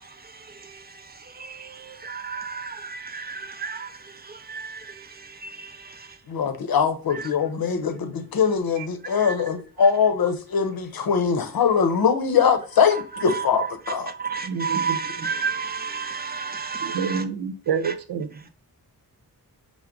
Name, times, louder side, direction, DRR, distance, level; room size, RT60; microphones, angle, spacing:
voice 1, 1.4-3.9 4.5-4.8 7.1-7.2 9.2-9.4 13.3-17.2 17.8-17.9, right 5 dB, 25° right, 0.5 m, -31 dB
voice 2, 6.3-14.1, left 6 dB, 65° left, 0.7 m, -22 dB
voice 3, 14.4-15.0 16.8-18.3, right 6 dB, 85° right, 0.7 m, -28 dB
5.8 x 2.1 x 3.6 m
wide cardioid pair, 115°, 38 cm